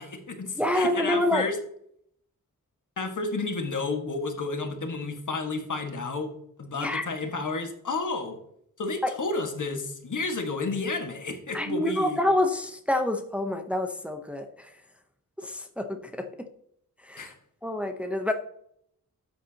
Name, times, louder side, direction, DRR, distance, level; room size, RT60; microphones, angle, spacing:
voice 1, 0.0-1.6 3.0-6.3 6.6-8.4 8.8-12.2 17.2-17.4, left 3 dB, 60° left, 4 dB, 1.7 m, -31 dB
voice 2, 0.6-1.4 6.7-7.1 9.0-9.1 11.5-14.7 15.4-16.3 17.0-17.3 17.6-18.3, left 1 dB, 5° right, 5 dB, 0.8 m, -27 dB
13.0 x 8.4 x 2.9 m, 0.70 s
wide cardioid pair, 105°, 35 cm